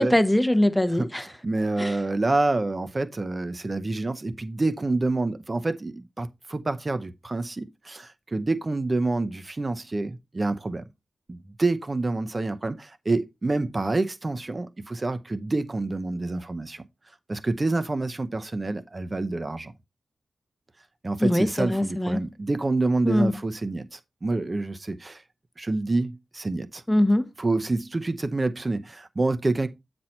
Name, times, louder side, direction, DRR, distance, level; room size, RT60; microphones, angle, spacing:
voice 1, 0.0-1.3 1.8-2.0 21.2-22.2 23.0-23.4 26.9-27.3, left 1 dB, 5° left, 0.9 m, -22 dB
voice 2, 1.0-10.8 11.3-16.8 17.3-19.7 21.0-25.2 25.6-26.8 27.4-29.7, right 2 dB, 35° right, 0.8 m, -27 dB
9.2 x 4.3 x 4.3 m
wide cardioid pair, 80°, 0 cm